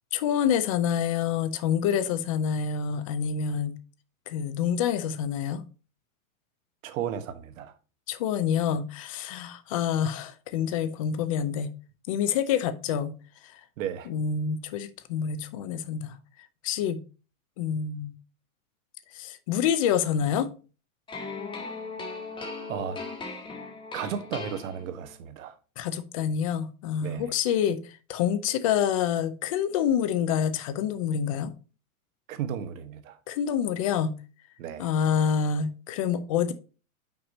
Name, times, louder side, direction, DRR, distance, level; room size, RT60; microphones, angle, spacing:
voice 1, 0.1-3.7 4.3-5.6 8.1-11.7 12.1-13.1 13.4-13.6 14.1-16.2 16.6-17.0 17.6-18.1 19.1-20.5 25.8-31.5 33.3-34.2 34.8-36.5, left 8 dB, 25° left, 0.3 m, -27 dB
voice 2, 6.8-7.7 13.8-14.1 22.7-23.0 23.9-25.5 27.0-27.3 32.3-33.2 34.6-34.9, right 9 dB, 65° right, 1.2 m, -34 dB
Arab Cafe loop, 21.1-25.2, left 4 dB, 10° left, 1.1 m, -38 dB
5.9 x 4.8 x 4.0 m
supercardioid pair, 155°, 42 cm